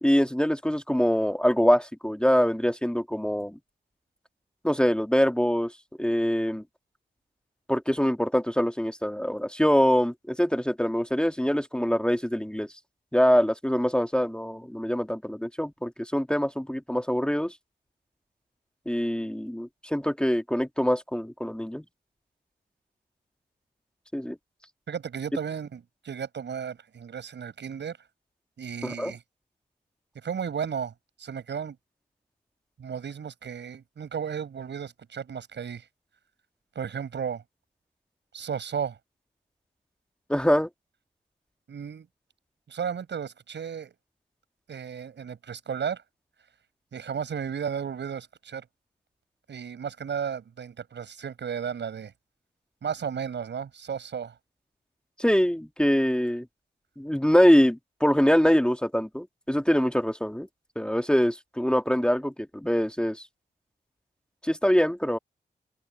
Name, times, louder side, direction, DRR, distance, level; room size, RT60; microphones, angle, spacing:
voice 1, 0.0-3.6 4.6-5.7 6.0-6.6 7.7-12.7 13.1-17.5 18.9-21.8 24.1-24.4 28.8-29.1 40.3-40.7 55.2-56.5 57.0-60.5 60.8-63.3 64.4-65.2, equal, 5° left, 1.9 m, -24 dB
voice 2, 24.9-28.0 28.6-29.2 30.2-30.9 31.2-31.8 32.8-35.8 36.8-37.4 38.3-39.0 41.7-42.1 42.7-43.9 44.7-46.0 46.9-48.7 49.5-52.1 52.8-54.3, right 7 dB, 80° right, 7.4 m, -34 dB
open air
cardioid pair, 50°, 18 cm